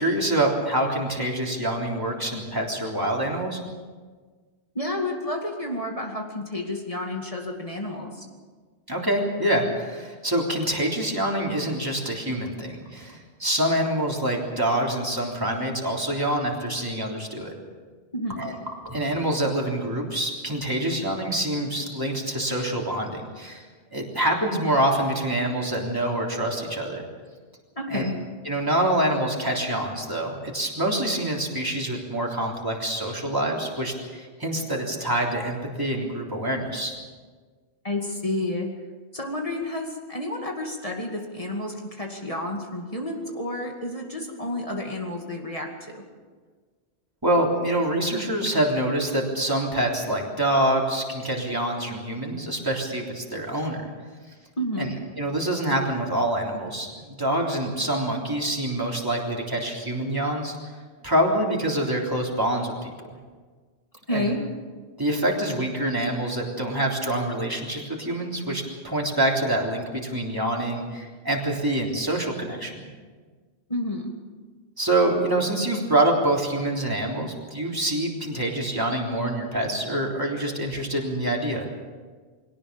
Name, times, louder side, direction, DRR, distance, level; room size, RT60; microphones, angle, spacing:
voice 1, 0.0-3.6 8.9-17.5 18.4-18.6 18.8-23.7 23.9-27.1 27.9-28.0 28.5-37.0 47.2-53.9 54.8-54.9 55.2-60.6 61.0-63.1 64.1-64.3 65.0-72.9 74.8-81.7, right 1 dB, 20° right, -1 dB, 3.5 m, -26 dB
voice 2, 4.7-8.3 18.1-18.4 27.8-28.1 37.8-38.7 39.1-46.0 54.6-54.9 64.1-64.4 73.7-74.1, left 1 dB, 30° left, 1 dB, 2.4 m, -30 dB
22.0 x 18.0 x 7.0 m, 1.5 s
omnidirectional pair, 1.1 m